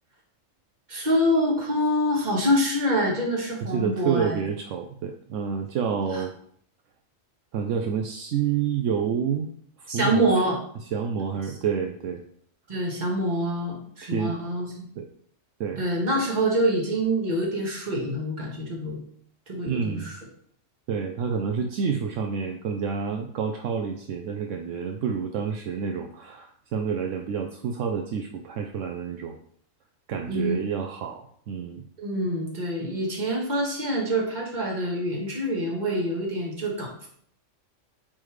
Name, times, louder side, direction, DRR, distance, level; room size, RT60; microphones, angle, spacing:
voice 1, 0.9-4.4 6.1-6.2 9.9-10.6 12.7-14.9 15.8-19.0 19.5-20.2 30.2-30.6 32.0-37.1, equal, 35° right, -2 dB, 1.6 m, -26 dB
voice 2, 3.6-6.3 7.5-9.5 9.8-10.2 10.9-12.2 14.0-14.4 15.0-15.1 15.6-15.8 19.7-20.1 20.9-29.4 30.1-31.8, right 7 dB, 75° right, 4 dB, 0.9 m, -28 dB
8.5 x 3.5 x 3.2 m, 0.62 s
omnidirectional pair, 1.4 m